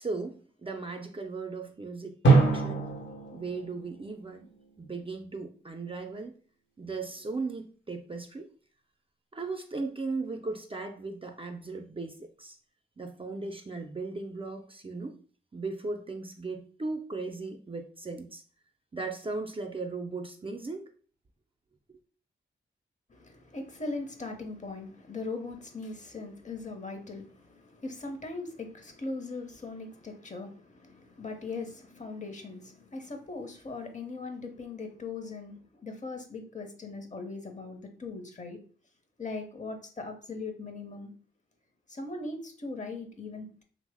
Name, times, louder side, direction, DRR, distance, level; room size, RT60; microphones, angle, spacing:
voice 1, 0.0-2.9 3.3-4.5 4.8-6.3 6.8-8.5 9.3-12.6 13.0-15.2 15.5-18.4 18.9-20.9, right 3 dB, 25° right, 0.4 m, -37 dB
Drum, 2.2-4.9, right 4 dB, 65° left, 0.9 m, -26 dB
voice 2, 23.1-38.6 39.2-41.1 41.9-43.6, left 3 dB, 35° left, 0.7 m, -40 dB
3.0 x 2.0 x 3.4 m
cardioid pair, 40°, 20 cm